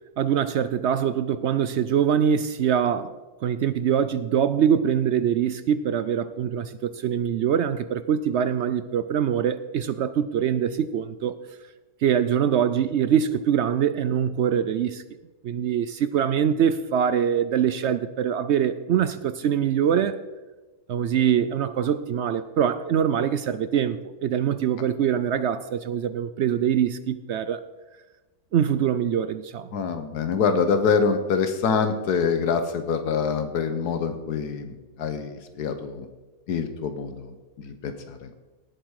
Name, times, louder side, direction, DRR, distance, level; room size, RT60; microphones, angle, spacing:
voice 1, 0.2-3.1 3.4-11.3 12.0-15.0 15.4-20.2 20.9-27.6 28.5-29.7, right 8 dB, 70° right, 13 dB, 0.6 m, -23 dB
voice 2, 29.7-36.1 36.5-38.2, left 5 dB, 80° left, 8 dB, 1.5 m, -25 dB
17.5 x 7.8 x 4.8 m, 1.2 s
omnidirectional pair, 1.7 m